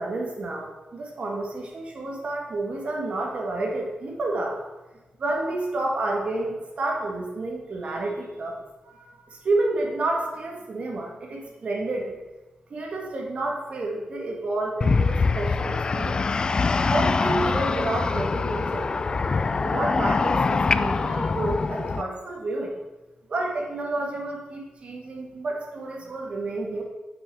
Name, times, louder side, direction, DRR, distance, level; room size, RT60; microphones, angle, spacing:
voice 1, 0.0-4.6 5.2-12.2 12.7-19.0 19.6-22.8 23.3-26.8, right 2 dB, 50° right, 0 dB, 2.1 m, -30 dB
sound 1, 14.8-22.0, left 4 dB, 30° left, 0.3 m, -24 dB
8.4 x 6.2 x 6.4 m, 1.1 s
wide cardioid pair, 145°, 3 cm